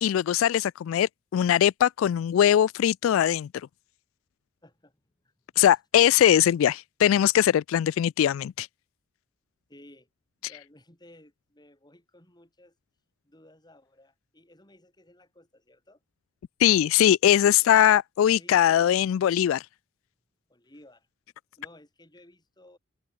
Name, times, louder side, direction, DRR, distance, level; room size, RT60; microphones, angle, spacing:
voice 1, 0.0-3.7 5.6-8.7 16.6-19.7, left 10 dB, 90° left, 0.3 m, -21 dB
voice 2, 4.6-5.3 9.7-10.1 10.4-12.8 13.2-16.0 17.4-17.7 18.2-19.0 20.5-21.1 21.6-22.8, left 1 dB, 20° left, 6.4 m, -55 dB
head